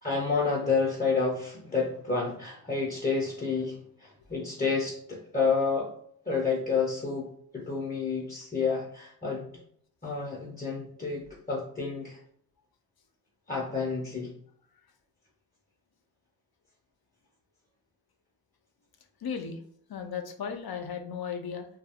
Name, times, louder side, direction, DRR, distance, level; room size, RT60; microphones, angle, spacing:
voice 1, 0.0-5.9 6.3-9.5 10.0-12.2 13.5-14.3, left 4 dB, 20° left, -3 dB, 0.6 m, -30 dB
voice 2, 19.2-19.6 19.9-21.7, left 6 dB, 65° left, 5 dB, 0.5 m, -35 dB
2.2 x 2.1 x 3.4 m, 0.65 s
wide cardioid pair, 45°, 41 cm